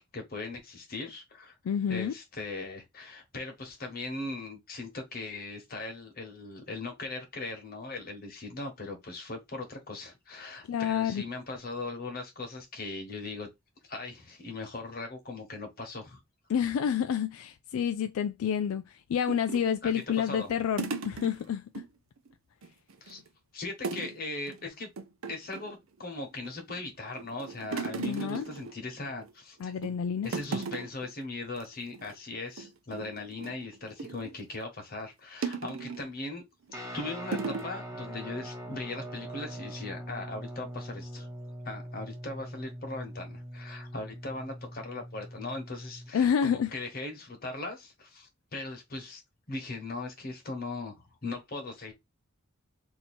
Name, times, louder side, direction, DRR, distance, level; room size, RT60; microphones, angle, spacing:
voice 1, 0.0-1.5 1.9-13.5 13.9-16.2 19.8-20.5 23.0-23.2 23.5-24.9 25.3-29.7 30.2-36.4 36.9-41.3 41.6-49.2 49.5-51.9, left 2 dB, 45° left, 1.3 m, -39 dB
voice 2, 1.6-2.1 10.7-11.2 16.5-21.8 28.0-28.5 29.6-30.3 46.1-46.7, left 8 dB, 75° left, 0.3 m, -29 dB
sound 1, 19.3-21.9 22.2-22.3 22.6-23.3 23.8-24.2 24.5-24.6 25.0-25.8 26.3-26.8 27.2-29.3 29.7-30.0 30.2-31.1 31.5-31.6 31.9-32.1 32.6-34.4 35.4-36.1 36.7-36.9 37.3-37.7, right 4 dB, 65° right, 0.6 m, -37 dB
Guitar, 36.7-46.1, right 1 dB, 15° right, 1.0 m, -42 dB
2.9 x 2.8 x 4.3 m
head